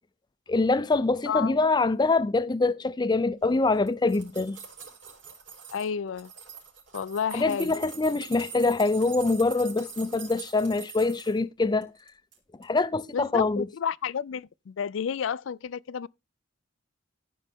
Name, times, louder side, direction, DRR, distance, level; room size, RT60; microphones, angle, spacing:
voice 1, 0.5-4.6 7.3-11.9 12.6-13.7, left 3 dB, 20° left, 0.5 m, -24 dB
sound 1, 3.7-5.9 6.2-11.4 11.8-12.4 12.6-12.7, right 7 dB, 70° right, 5.3 m, -44 dB
voice 2, 5.7-6.3 6.9-7.8 13.1-16.1, left 7 dB, 80° left, 0.4 m, -31 dB
15.0 x 5.5 x 3.5 m
head